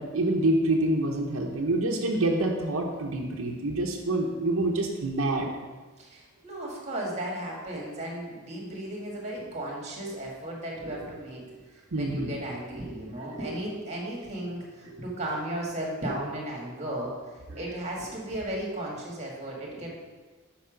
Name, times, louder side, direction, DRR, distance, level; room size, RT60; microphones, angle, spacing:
voice 1, 0.0-5.5 11.9-12.3, right 2 dB, 70° right, 0 dB, 0.9 m, -26 dB
voice 2, 6.0-17.1 17.5-19.9, right 1 dB, 30° right, -2 dB, 1.9 m, -35 dB
7.1 x 5.7 x 5.1 m, 1.3 s
head